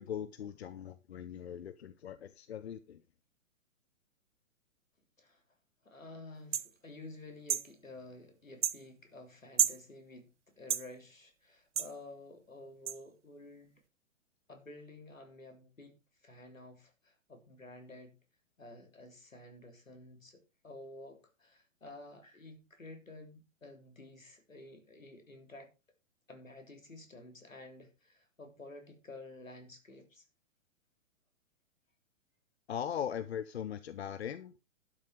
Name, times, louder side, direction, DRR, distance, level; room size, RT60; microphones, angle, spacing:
voice 1, 0.0-3.0 32.7-34.5, left 9 dB, 55° left, 0.9 m, -40 dB
voice 2, 5.8-10.3 10.6-13.7 14.5-15.9 16.2-18.1 18.6-25.7 26.3-30.2, left 2 dB, 80° left, 3.5 m, -51 dB
sound 1, 6.5-6.7 7.5-7.7 8.6-8.8 9.6-9.8 10.7-10.9 11.8-11.9 12.9-13.0, right 8 dB, 60° right, 0.9 m, -30 dB
11.5 x 7.5 x 4.9 m
figure-of-eight pair, 115°, 39 cm